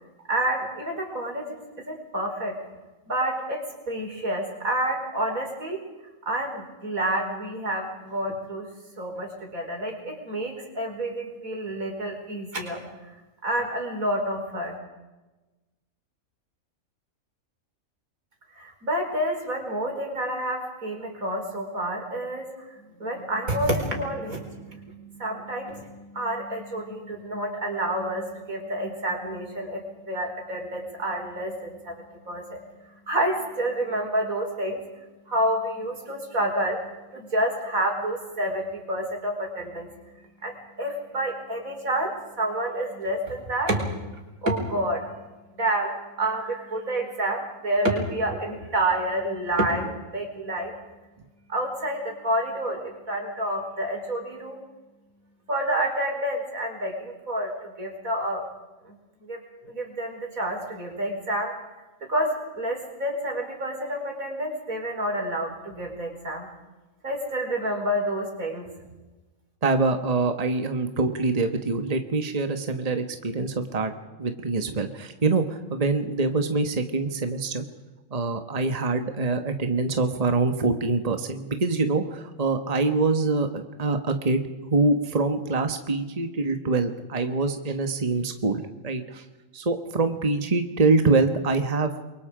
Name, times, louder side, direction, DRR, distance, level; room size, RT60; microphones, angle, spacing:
voice 1, 0.3-1.5 1.8-2.6 3.1-5.8 6.2-8.7 9.0-12.8 13.4-14.8 18.6-22.5 23.0-32.0 32.2-32.6 33.1-34.8 35.3-36.8 37.1-39.9 40.4-43.8 44.4-45.1 45.6-45.9 46.2-50.7 51.5-54.6 55.5-58.5 58.9-59.0 59.2-59.4 59.6-61.5 62.1-66.5 67.0-68.7, right 1 dB, 80° right, 2 dB, 5.1 m, -29 dB
voice 2, 69.6-73.9 74.2-77.6 78.1-84.4 84.7-89.2 89.5-91.9, right 3 dB, 30° right, 7 dB, 1.5 m, -25 dB
29.0 x 23.0 x 5.1 m, 1.1 s
omnidirectional pair, 1.4 m